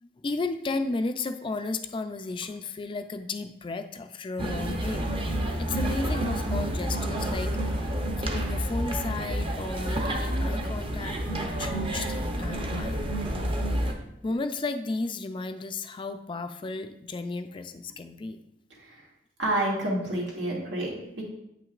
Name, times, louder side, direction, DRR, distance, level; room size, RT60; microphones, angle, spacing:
voice 1, 0.0-5.1 5.6-13.5 13.8-13.9 14.2-18.4, left 3 dB, 30° left, 8 dB, 0.3 m, -34 dB
sound 1, 4.4-13.9, right 1 dB, 30° right, 0.7 m, -29 dB
voice 2, 19.4-21.2, right 1 dB, 90° right, -4 dB, 2.1 m, -29 dB
8.3 x 5.9 x 2.4 m, 0.81 s
head